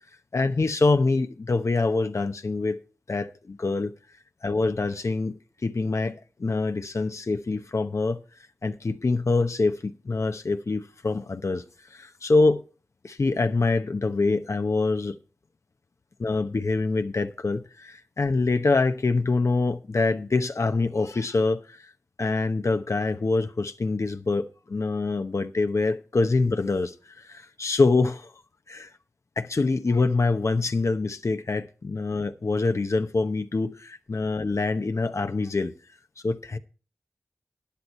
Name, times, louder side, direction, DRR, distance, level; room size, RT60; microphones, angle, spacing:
voice 1, 0.3-2.8 3.1-3.9 4.4-5.4 5.6-8.2 8.6-11.6 11.9-12.6 13.0-15.2 16.2-21.9 22.2-28.3 28.7-28.9 29.4-35.7 36.2-36.6, left 3 dB, 60° left, 0.9 m, -25 dB
12.5 x 9.9 x 4.3 m
cardioid pair, 45°, 6 cm